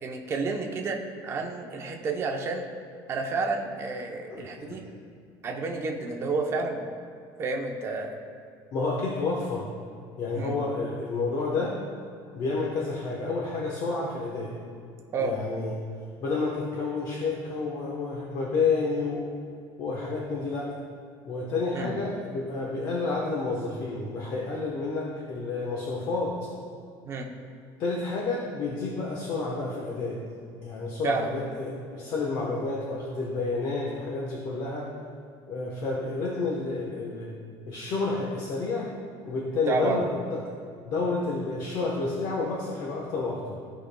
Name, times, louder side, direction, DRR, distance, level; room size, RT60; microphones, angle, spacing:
voice 1, 0.0-2.7 3.1-4.8 5.4-6.9 7.4-8.1 10.3-10.6 15.1-15.4 21.7-21.9 27.0-27.3 31.0-31.3 39.7-40.0, right 3 dB, 30° right, 2 dB, 0.7 m, -30 dB
voice 2, 4.3-4.8 8.7-9.7 10.2-11.7 12.3-14.5 15.2-15.8 16.2-19.3 19.8-20.8 21.2-26.5 27.8-30.2 30.6-34.9 35.5-37.3 37.7-38.9 39.2-40.4 40.8-43.6, left 3 dB, 50° left, -2 dB, 1.0 m, -30 dB
15.0 x 5.0 x 2.2 m, 2.3 s
cardioid pair, 165°, 9 cm